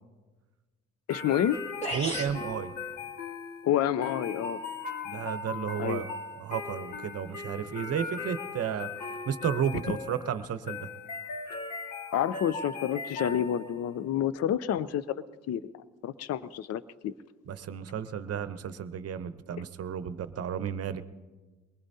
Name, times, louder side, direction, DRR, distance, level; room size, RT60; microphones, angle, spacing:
sound 1, 1.1-13.9, left 4 dB, 70° left, 1.9 m, -39 dB
voice 1, 1.1-1.6 3.6-4.6 5.8-6.0 9.9-10.0 12.1-15.7 16.0-17.1, left 10 dB, 55° left, 16 dB, 0.5 m, -29 dB
sound 2, 1.4-1.5 1.8-2.4, right 1 dB, 20° left, 2.4 m, -33 dB
voice 2, 1.9-2.7 5.0-6.0 6.4-8.9 9.3-10.9 17.5-21.0, right 8 dB, 55° right, 12 dB, 0.8 m, -33 dB
22.5 x 19.5 x 2.8 m, 1.3 s
cardioid pair, 90°, 30 cm